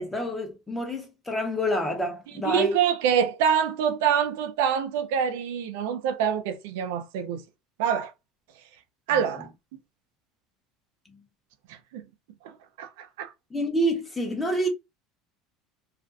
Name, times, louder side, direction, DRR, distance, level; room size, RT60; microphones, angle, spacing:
voice 1, 0.0-2.7 13.5-14.7, equal, 10° left, 0.9 m, -27 dB
voice 2, 2.4-7.4 7.8-8.1 9.1-9.5 11.7-12.0 12.4-13.3, right 8 dB, 85° right, 0.4 m, -26 dB
2.4 x 2.2 x 2.4 m
supercardioid pair, 125°, 0 cm